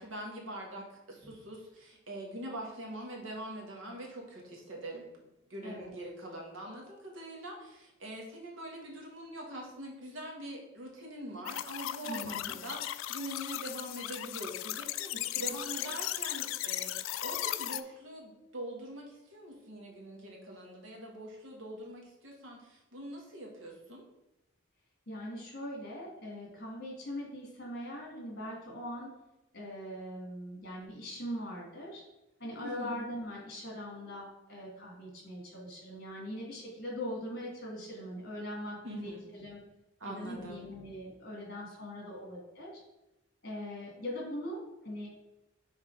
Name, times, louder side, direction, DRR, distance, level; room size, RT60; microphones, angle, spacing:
voice 1, 0.0-5.1 5.5-24.0 32.6-33.1 38.8-39.3 40.0-40.7, right 1 dB, 75° right, -1 dB, 1.7 m, -43 dB
sound 1, 11.5-17.8, left 13 dB, 75° left, 0.3 m, -37 dB
voice 2, 12.1-12.5 15.1-15.5 25.1-29.1 29.5-32.0 32.4-39.6 40.0-42.7 43.4-45.1, left 1 dB, 50° left, -2 dB, 2.3 m, -41 dB
6.0 x 4.0 x 4.8 m, 0.96 s
head